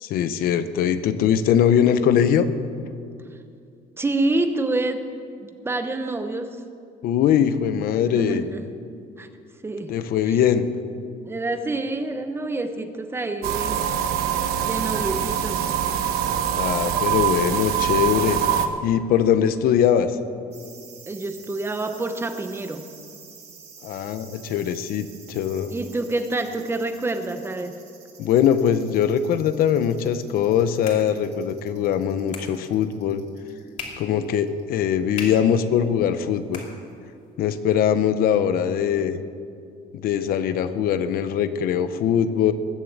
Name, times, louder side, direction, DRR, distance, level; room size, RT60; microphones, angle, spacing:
voice 1, 0.0-2.5 7.0-8.4 9.9-10.7 16.6-18.4 18.8-20.2 23.8-25.7 28.2-33.2 34.0-36.6 37.4-39.2 39.9-42.5, left 9 dB, 70° left, 11 dB, 0.9 m, -21 dB
voice 2, 4.0-5.1 5.4-6.6 8.1-8.6 9.2-9.3 9.6-10.0 10.2-10.4 11.2-13.9 14.6-15.7 21.1-22.9 25.7-27.8, right 2 dB, 15° right, 8 dB, 0.8 m, -27 dB
sound 1, 13.4-18.7, right 9 dB, 90° right, 1.1 m, -24 dB
sound 2, 20.5-34.6 34.9-35.0, right 6 dB, 45° right, 3.9 m, -48 dB
sound 3, 30.3-37.3, left 4 dB, 45° left, 2.9 m, -42 dB
20.5 x 7.5 x 8.1 m, 2.4 s
cardioid pair, 150°, 16 cm